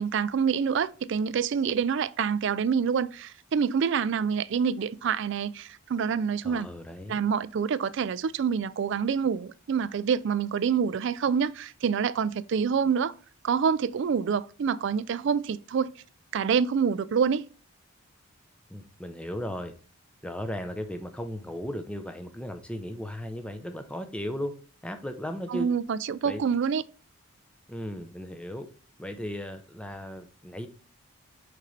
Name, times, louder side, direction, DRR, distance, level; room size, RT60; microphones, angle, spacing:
voice 1, 0.0-6.7 7.1-13.1 13.4-15.9 16.3-17.5 25.5-26.8, right 6 dB, 55° right, 0.3 m, -27 dB
voice 2, 6.4-7.2 18.7-19.7 20.2-24.5 24.8-25.7 26.2-26.4 27.7-28.7 29.0-30.7, left 1 dB, 5° left, 0.6 m, -36 dB
6.5 x 5.3 x 3.2 m
head